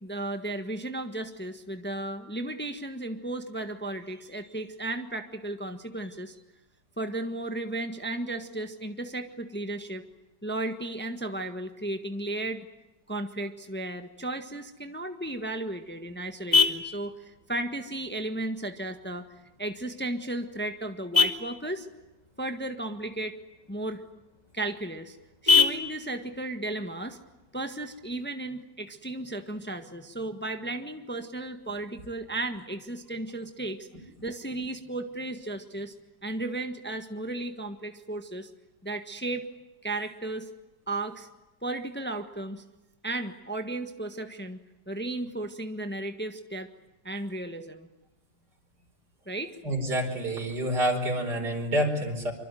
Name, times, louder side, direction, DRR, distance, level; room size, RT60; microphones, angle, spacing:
voice 1, 0.0-6.3 7.0-10.0 10.4-12.6 13.1-19.2 19.6-21.9 22.4-23.4 23.7-24.0 24.5-25.2 25.4-27.2 27.5-33.9 34.2-35.9 36.2-38.5 38.8-39.5 39.8-40.5 40.9-41.3 41.6-42.6 43.0-44.6 44.9-46.7 47.0-47.9 49.3-49.6, right 2 dB, 5° left, 6 dB, 1.4 m, -34 dB
Vehicle horn car horn honking, 15.2-28.2, left 4 dB, 25° left, 2.2 m, -31 dB
voice 2, 49.6-52.3, right 1 dB, 70° right, 1 dB, 5.3 m, -28 dB
25.0 x 25.0 x 9.2 m, 0.98 s
omnidirectional pair, 1.8 m